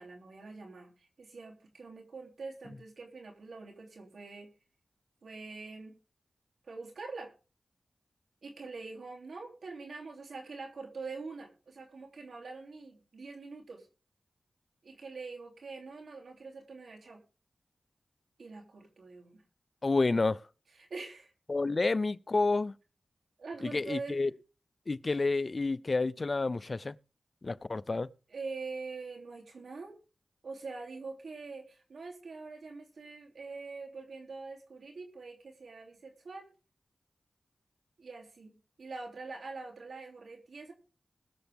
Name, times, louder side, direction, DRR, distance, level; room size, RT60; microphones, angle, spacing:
voice 1, 0.0-4.5 5.2-5.9 6.6-7.3 8.4-13.9 14.8-17.2 18.4-19.4 20.7-21.3 21.7-21.8 23.4-24.2 28.3-30.0 30.4-36.5 38.0-40.7, right 4 dB, 80° right, 3.0 m, -44 dB
voice 2, 19.8-20.4 21.5-22.7 23.7-24.3 24.9-26.9 27.4-28.1, left 3 dB, 50° left, 0.6 m, -29 dB
21.0 x 7.0 x 3.5 m
cardioid pair, 50°, 0 cm